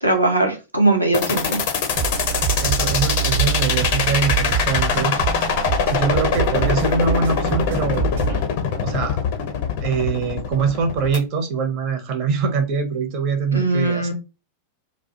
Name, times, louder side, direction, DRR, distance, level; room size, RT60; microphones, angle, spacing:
voice 1, 0.0-1.6 13.5-14.1, right 2 dB, 85° right, 0.6 m, -20 dB
sound 1, 1.1-11.2, left 7 dB, 50° left, 0.5 m, -23 dB
sound 2, 1.9-8.4, right 5 dB, 60° right, 1.0 m, -25 dB
voice 2, 2.6-5.2 5.9-8.1 8.8-9.2 9.8-14.1, right 5 dB, 40° right, 0.6 m, -23 dB
2.2 x 2.1 x 2.7 m
figure-of-eight pair, 90°, 0 cm